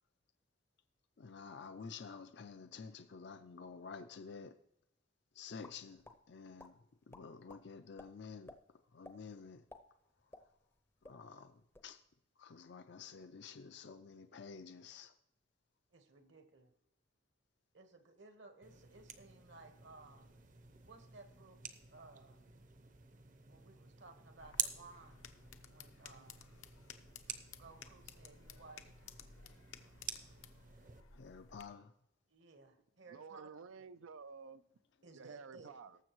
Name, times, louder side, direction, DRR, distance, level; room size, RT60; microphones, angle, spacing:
voice 1, 1.2-4.6 5.3-8.6 8.9-9.6 11.0-12.0 12.4-15.1 31.1-31.9, left 5 dB, 55° left, 0.4 m, -51 dB
sound 1, 5.6-6.2 6.6-6.7 7.1-7.6 8.0-8.1 8.5-8.6 9.0-9.2 9.5-10.8 11.0-11.2 11.6-11.9, left 2 dB, 10° left, 0.6 m, -54 dB
voice 2, 15.9-16.7 17.7-20.3 20.8-21.6 21.9-22.4 23.5-25.3 25.7-26.4 27.6-29.1 32.3-33.5 35.0-35.7, right 3 dB, 60° right, 1.2 m, -58 dB
sound 2, 18.6-31.0, right 8 dB, 40° right, 0.7 m, -49 dB
sound 3, 24.4-31.6, left 7 dB, 80° left, 0.8 m, -57 dB
voice 3, 33.1-34.6 35.1-36.0, right 5 dB, 80° right, 0.5 m, -51 dB
18.5 x 7.3 x 3.1 m
head